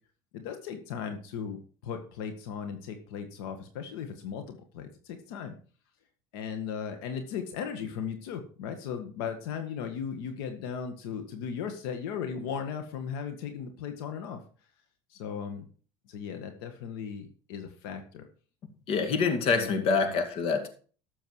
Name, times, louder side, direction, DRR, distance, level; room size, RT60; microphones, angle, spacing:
voice 1, 0.3-5.6 6.3-14.4 15.1-15.6 16.1-18.3 19.5-20.2, left 7 dB, 85° left, 6 dB, 1.8 m, -37 dB
voice 2, 18.9-20.7, left 5 dB, 50° left, 6 dB, 2.2 m, -26 dB
13.0 x 7.1 x 4.8 m, 0.41 s
supercardioid pair, 125°, 12 cm